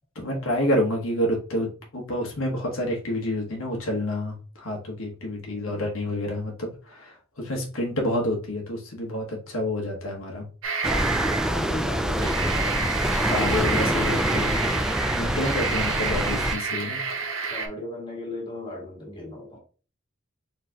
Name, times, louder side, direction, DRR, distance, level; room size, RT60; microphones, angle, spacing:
voice 1, 0.2-1.7 1.9-10.4 13.3-14.6 15.1-17.0, left 1 dB, 85° left, 1.3 m, -28 dB
voice 2, 5.5-5.9 11.5-12.9 17.5-19.6, left 1 dB, 25° left, 2.0 m, -37 dB
sound 1, 10.6-11.6 12.1-17.7, right 4 dB, 75° right, 0.9 m, -29 dB
sound 2, 10.8-16.6, equal, 5° right, 0.3 m, -25 dB
4.4 x 3.9 x 2.8 m
head